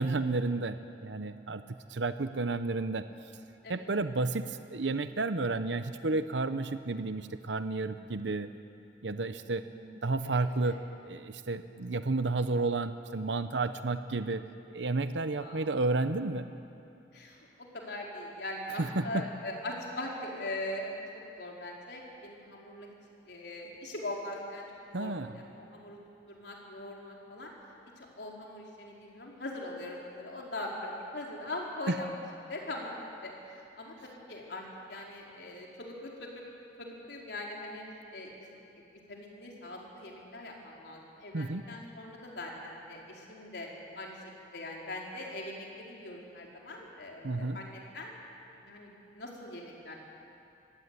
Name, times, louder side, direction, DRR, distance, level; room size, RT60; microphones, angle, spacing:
voice 1, 0.0-1.6 1.9-3.1 3.7-8.5 9.0-9.6 10.0-14.4 14.7-16.5 18.8-19.2 24.9-25.4 31.9-32.0 41.3-41.7 47.2-47.6, right 3 dB, 85° right, 10 dB, 0.8 m, -31 dB
voice 2, 9.6-9.9 10.6-10.8 11.7-11.8 15.4-15.7 17.1-17.4 17.7-20.9 21.4-22.9 23.3-24.7 24.9-26.0 26.3-27.5 28.0-32.1 32.5-34.6 34.9-36.4 36.8-37.8 38.1-38.6 39.1-43.7 44.0-44.2 44.5-48.1 48.5-50.0, left 1 dB, 65° left, -2 dB, 4.6 m, -41 dB
24.5 x 16.5 x 9.8 m, 2.8 s
head